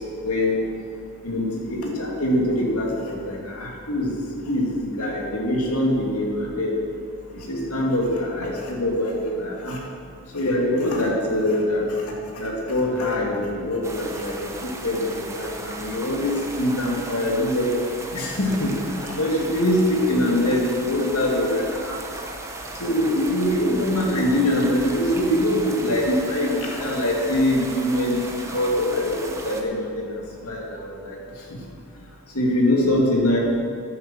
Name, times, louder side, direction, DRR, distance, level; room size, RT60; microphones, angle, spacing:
voice 1, 0.2-0.6 1.2-4.2 4.4-6.8 7.3-9.8 10.3-12.0 12.3-17.8 18.1-18.7 19.0-22.0 22.8-29.2 29.4-30.1 30.4-31.2 32.3-33.4, left 1 dB, 80° left, -2 dB, 2.5 m, -23 dB
sound 1, 13.8-29.6, right 2 dB, 15° right, 0.9 m, -36 dB
10.5 x 8.2 x 7.5 m, 2.3 s
head